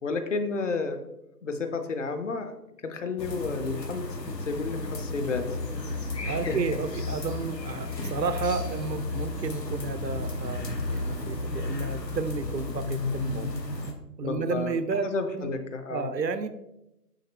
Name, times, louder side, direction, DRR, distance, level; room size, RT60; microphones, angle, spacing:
voice 1, 0.0-1.0 1.4-2.5 2.8-4.1 4.5-5.5 6.2-6.6 14.2-14.8 15.0-16.1, left 4 dB, 50° left, 7 dB, 0.8 m, -31 dB
sound 1, 3.2-13.9, left 2 dB, 85° left, 1.3 m, -33 dB
voice 2, 5.9-13.5 14.2-15.1 15.3-15.6 15.9-16.5, right 4 dB, 90° right, 11 dB, 0.8 m, -32 dB
6.4 x 5.9 x 3.2 m, 0.88 s
figure-of-eight pair, 150°, 49 cm